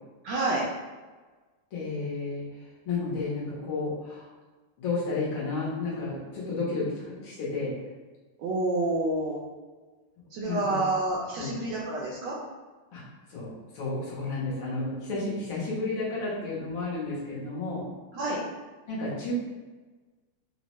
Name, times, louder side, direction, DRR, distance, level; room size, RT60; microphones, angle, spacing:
voice 1, 0.2-0.6 8.4-9.4 10.3-12.3 18.1-18.4, right 2 dB, 75° right, -4 dB, 1.1 m, -28 dB
voice 2, 1.7-2.4 2.9-4.3 4.8-7.7 10.5-10.8 11.4-11.5 12.9-13.0 13.3-17.8 18.9-19.3, left 3 dB, 75° left, -7 dB, 1.8 m, -32 dB
4.4 x 2.1 x 3.0 m, 1.3 s
omnidirectional pair, 2.3 m